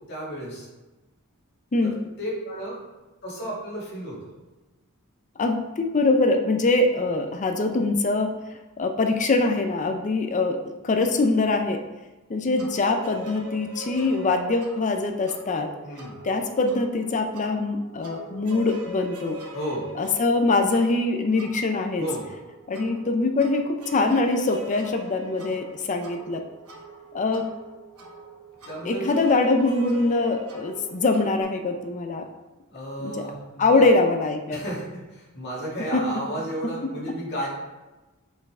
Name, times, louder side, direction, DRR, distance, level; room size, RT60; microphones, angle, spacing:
voice 1, 0.1-0.7 1.8-2.8 3.2-4.2 15.8-16.1 19.5-19.9 22.0-22.3 28.7-29.1 32.7-33.8 34.5-37.5, right 1 dB, 50° left, -5 dB, 2.4 m, -33 dB
voice 2, 5.4-8.3 8.8-11.8 12.3-15.7 16.2-19.4 20.0-22.1 22.7-26.4 27.1-27.5 28.8-32.3 33.0-33.3 33.6-34.6 35.9-36.0 36.8-37.2, left 3 dB, 35° left, 5 dB, 0.5 m, -23 dB
sound 1, 12.6-31.4, equal, 80° right, 1.1 m, -42 dB
6.4 x 5.2 x 3.6 m, 1.1 s
head